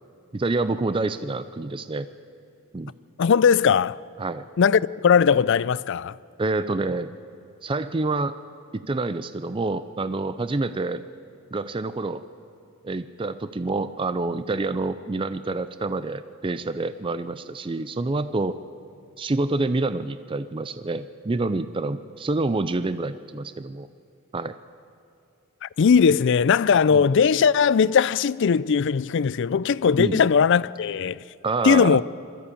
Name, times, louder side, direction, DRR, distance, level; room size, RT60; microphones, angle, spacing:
voice 1, 0.3-2.1 2.7-2.9 4.2-4.4 6.4-7.1 7.6-8.4 8.7-11.0 11.5-12.2 12.8-18.6 19.2-23.9 24.3-24.6 26.9-27.1 30.0-30.2 31.4-32.0, right 3 dB, 25° right, 0.4 m, -27 dB
voice 2, 3.2-4.0 4.6-6.1 25.6-31.2 31.6-32.0, left 6 dB, 60° left, 0.4 m, -19 dB
22.0 x 14.0 x 8.5 m
head